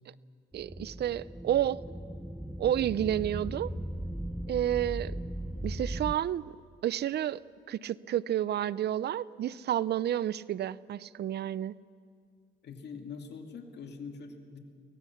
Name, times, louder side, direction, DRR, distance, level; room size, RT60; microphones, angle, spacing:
sound 1, 0.5-6.1, right 1 dB, 5° right, 0.7 m, -38 dB
voice 1, 0.5-1.8 2.6-3.7 4.5-5.1 5.6-6.4 6.8-7.4 7.7-11.7, right 11 dB, 55° right, 20 dB, 0.5 m, -30 dB
voice 2, 12.6-14.6, left 5 dB, 60° left, 4 dB, 2.5 m, -43 dB
24.5 x 17.5 x 7.1 m, 2.3 s
cardioid pair, 90°, 20 cm